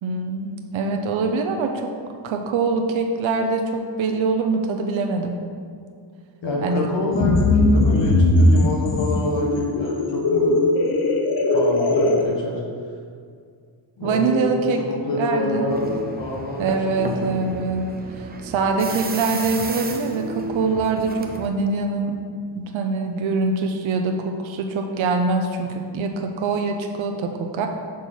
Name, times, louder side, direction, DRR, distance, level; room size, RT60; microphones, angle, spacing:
voice 1, 0.0-1.9 2.2-5.4 6.6-6.9 14.0-14.8 15.2-15.7 16.6-17.9 18.2-22.2 22.6-27.7, right 4 dB, 75° right, 4 dB, 0.7 m, -24 dB
voice 2, 6.4-10.7 11.5-12.6 14.0-17.5, left 2 dB, 65° left, -4 dB, 1.5 m, -27 dB
sound 1, 7.1-12.2, left 2 dB, 50° left, 0.7 m, -19 dB
sound 2, 15.7-21.5, right 3 dB, 20° right, 0.5 m, -33 dB
6.4 x 4.3 x 5.5 m, 2.1 s
wide cardioid pair, 125°, 47 cm